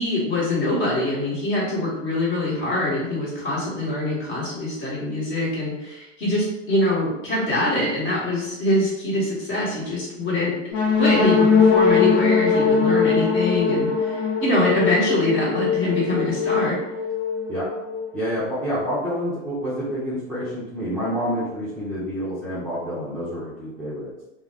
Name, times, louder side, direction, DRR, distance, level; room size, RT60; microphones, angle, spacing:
voice 1, 0.0-10.6 10.9-16.8, left 1 dB, 35° left, -6 dB, 1.2 m, -24 dB
sound 1, 10.7-18.4, left 5 dB, 70° left, 0.8 m, -21 dB
voice 2, 18.1-24.1, equal, ahead, -12 dB, 0.4 m, -28 dB
2.3 x 2.0 x 3.2 m, 0.94 s
hypercardioid pair, 125°, 38 cm